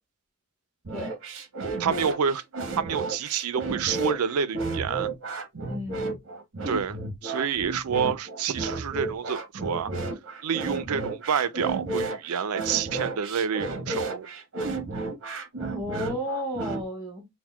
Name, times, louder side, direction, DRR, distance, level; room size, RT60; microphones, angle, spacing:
sound 1, 0.8-16.8, right 3 dB, 60° right, 0.9 m, -32 dB
voice 1, 1.8-2.4 2.8-5.1 6.7-9.9 10.4-14.3, right 7 dB, 80° right, 0.5 m, -28 dB
voice 2, 5.7-6.0 10.6-10.9 15.6-17.3, equal, 15° right, 0.9 m, -33 dB
5.9 x 2.2 x 2.3 m
head